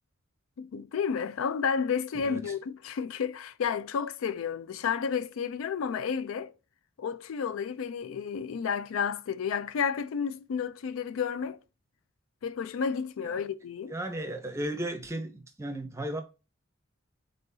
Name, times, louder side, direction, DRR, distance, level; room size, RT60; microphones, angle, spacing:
voice 1, 0.6-6.5 7.0-11.6 12.4-13.9, left 6 dB, 90° left, 0.4 m, -31 dB
voice 2, 2.2-2.5 13.9-16.2, right 1 dB, 15° right, 0.6 m, -35 dB
3.8 x 3.8 x 2.6 m
head